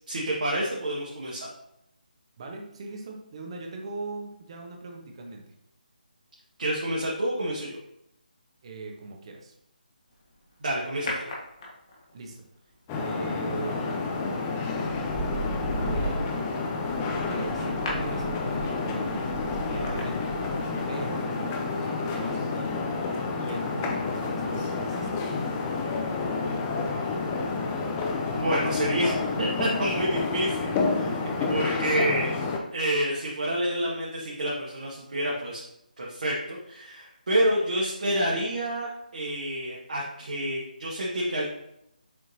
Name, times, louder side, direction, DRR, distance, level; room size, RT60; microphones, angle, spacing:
voice 1, 0.1-1.5 6.6-7.8 10.6-11.3 28.4-31.1 31.5-32.4 32.7-35.6 36.0-41.5, right 1 dB, 55° right, -5 dB, 1.6 m, -28 dB
voice 2, 2.4-5.5 8.6-9.6 12.1-12.5 12.9-14.1 15.7-16.3 17.3-20.3 20.9-22.8 23.4-25.1 31.1-31.7, right 3 dB, 35° right, 1 dB, 1.2 m, -40 dB
sound 1, 11.1-12.1 14.0-14.2 14.7-20.9 21.2-21.3, right 1 dB, 35° left, 1.7 m, -35 dB
sound 2, 12.9-32.6, left 4 dB, 15° left, 0.6 m, -29 dB
7.4 x 4.6 x 2.8 m, 0.79 s
figure-of-eight pair, 150°, 5 cm